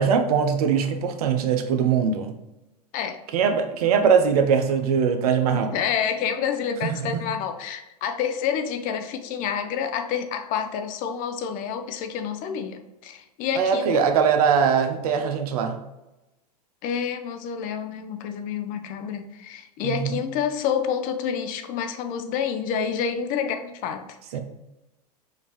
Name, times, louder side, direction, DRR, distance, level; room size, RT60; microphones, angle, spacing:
voice 1, 0.0-2.4 3.3-5.7 6.8-7.2 13.6-15.8 19.8-20.2 24.3-24.4, right 6 dB, 65° right, 7 dB, 0.7 m, -21 dB
voice 2, 5.5-14.1 16.8-24.4, left 7 dB, 40° left, 7 dB, 0.6 m, -28 dB
5.2 x 2.7 x 3.0 m, 0.98 s
hypercardioid pair, 100°, 20 cm